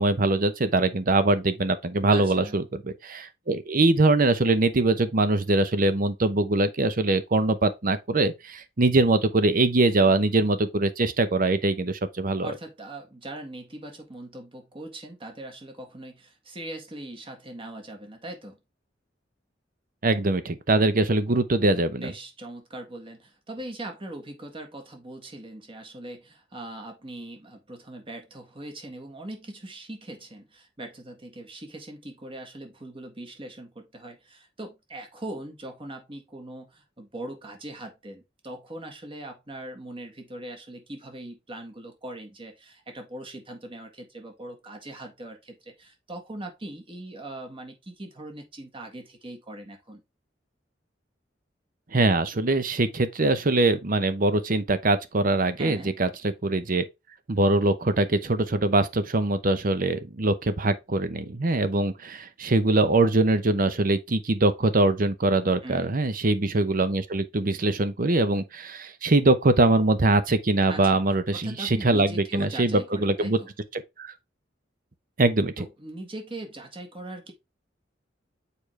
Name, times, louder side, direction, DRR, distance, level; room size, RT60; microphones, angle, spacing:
voice 1, 0.0-12.5 20.0-22.1 51.9-56.1 56.4-56.8 57.3-73.4 73.7-74.1 75.2-75.5, right 2 dB, 50° right, 0.8 m, -23 dB
voice 2, 2.1-2.6 10.0-10.3 12.4-18.6 21.9-50.0 55.6-56.0 65.6-65.9 70.7-71.0 71.3-73.5 75.6-77.3, right 1 dB, 30° right, 1.7 m, -40 dB
6.9 x 4.9 x 3.3 m
head